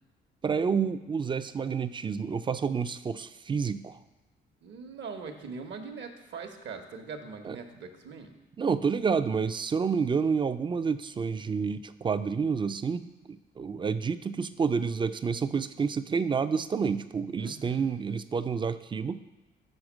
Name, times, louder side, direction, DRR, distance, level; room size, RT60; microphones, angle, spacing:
voice 1, 0.4-4.0 7.4-7.6 8.6-19.2, right 5 dB, 25° right, 13 dB, 0.3 m, -29 dB
voice 2, 4.6-8.4 17.4-17.9, right 5 dB, 65° right, 6 dB, 1.0 m, -41 dB
6.4 x 4.4 x 6.1 m, 1.1 s
cardioid pair, 90°, 20 cm